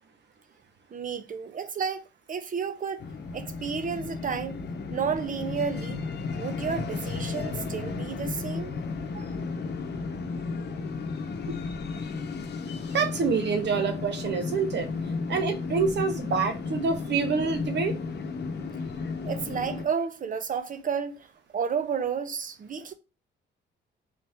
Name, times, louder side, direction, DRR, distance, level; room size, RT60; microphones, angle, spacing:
voice 1, 0.9-3.0 3.3-4.6 4.9-6.0 6.4-8.7 9.1-9.3 19.2-21.3 21.5-22.9, right 6 dB, 40° right, 0.7 m, -31 dB
sound 1, 3.0-19.9, left 4 dB, 55° left, 0.9 m, -34 dB
voice 2, 12.9-14.9 15.3-17.9, right 5 dB, 60° right, 1.0 m, -27 dB
4.0 x 2.8 x 3.5 m
cardioid pair, 90°, 20 cm